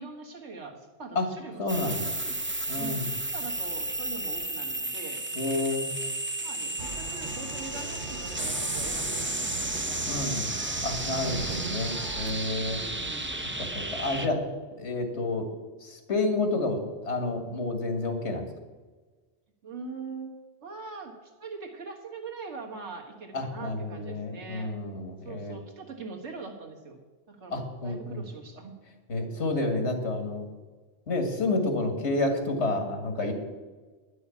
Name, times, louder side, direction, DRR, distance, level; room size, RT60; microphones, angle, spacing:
voice 1, 0.0-5.2 6.4-11.5 12.6-13.3 19.6-20.3 20.6-24.7 25.2-27.0 27.3-28.8, right 4 dB, 85° right, 2 dB, 1.9 m, -43 dB
voice 2, 1.6-2.2 2.7-3.1 5.4-5.9 10.0-10.6 10.8-12.8 13.6-14.5 14.8-15.5 15.8-16.8 17.0-18.5 23.3-25.6 27.5-28.2 29.1-30.5 31.1-33.3, left 2 dB, 80° left, 5 dB, 2.0 m, -29 dB
sound 1, 1.7-14.3, right 2 dB, 15° right, 0.5 m, -33 dB
sound 2, 6.8-12.3, right 4 dB, 50° right, 1.1 m, -39 dB
10.0 x 6.3 x 8.3 m, 1.3 s
omnidirectional pair, 1.1 m